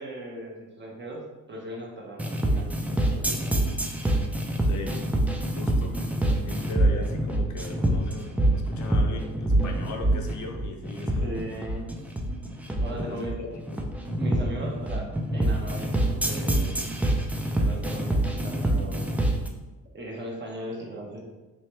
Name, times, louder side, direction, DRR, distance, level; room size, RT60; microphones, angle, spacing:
voice 1, 0.0-3.8 5.8-6.0 6.4-6.7 11.0-11.9 12.8-13.4 14.1-17.0 17.5-19.1 19.9-21.3, right 1 dB, 35° right, -1 dB, 1.0 m, -38 dB
sound 1, 2.2-19.5, right 1 dB, 5° right, 0.4 m, -25 dB
voice 2, 4.6-5.0 5.5-5.9 6.2-11.3 11.8-11.9 12.9-13.8, left 3 dB, 70° left, 3 dB, 0.7 m, -38 dB
3.2 x 3.0 x 3.0 m, 1.1 s
cardioid pair, 90°, 30 cm